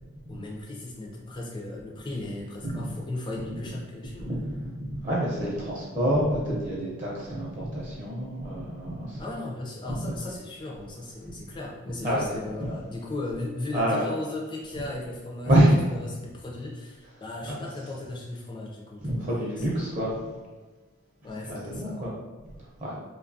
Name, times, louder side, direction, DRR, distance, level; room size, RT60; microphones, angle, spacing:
voice 1, 0.3-4.3 9.2-15.6 15.9-19.2 19.5-19.7 21.2-22.1, left 2 dB, 20° left, -1 dB, 0.3 m, -36 dB
voice 2, 4.2-9.2 9.9-10.1 12.0-12.3 13.7-14.0 15.5-15.8 17.4-17.5 19.0-20.3 21.5-22.1 22.8-22.9, right 1 dB, 35° right, -5 dB, 0.6 m, -27 dB
2.7 x 2.3 x 2.5 m, 1.3 s
head